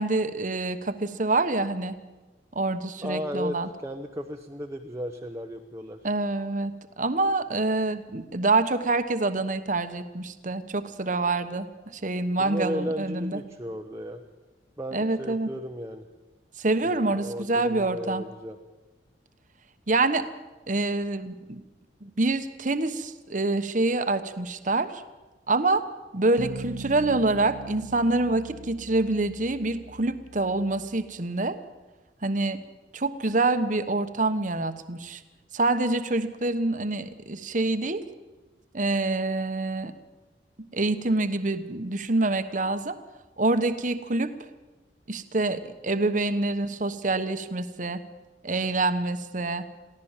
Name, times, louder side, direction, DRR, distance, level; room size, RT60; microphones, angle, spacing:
voice 1, 0.0-2.0 2.5-3.7 6.0-6.7 7.0-11.7 11.9-13.4 14.9-15.5 16.6-18.2 19.9-20.3 20.7-21.6 22.0-25.0 25.5-25.8 26.1-31.6 32.2-32.6 32.9-35.2 35.5-38.0 38.7-39.9 40.7-42.9 43.4-44.3 45.1-48.0 48.4-49.7, right 2 dB, 45° right, 10 dB, 1.2 m, -26 dB
voice 2, 3.0-3.6 3.8-6.0 12.4-14.2 14.8-16.1 16.8-18.6, equal, 15° right, 1 dB, 1.0 m, -34 dB
sound 1, 26.4-31.2, right 2 dB, 75° right, 1.2 m, -41 dB
23.0 x 15.5 x 7.4 m, 1.2 s
head